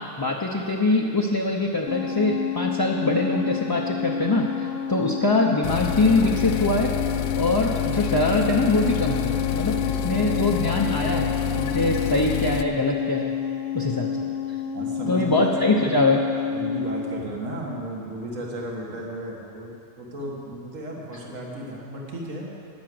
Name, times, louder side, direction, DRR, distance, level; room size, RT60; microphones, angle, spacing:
voice 1, 0.2-13.3 13.7-14.3 15.1-16.2, left 2 dB, 25° left, -1 dB, 0.5 m, -23 dB
sound 1, 1.9-17.2, left 6 dB, 65° left, 0.8 m, -29 dB
sound 2, 5.6-12.6, left 9 dB, 85° left, 1.0 m, -28 dB
voice 2, 14.7-15.9 16.5-19.7 20.0-22.5, right 1 dB, 80° right, -2 dB, 2.1 m, -34 dB
11.5 x 9.8 x 7.8 m, 2.7 s
omnidirectional pair, 1.3 m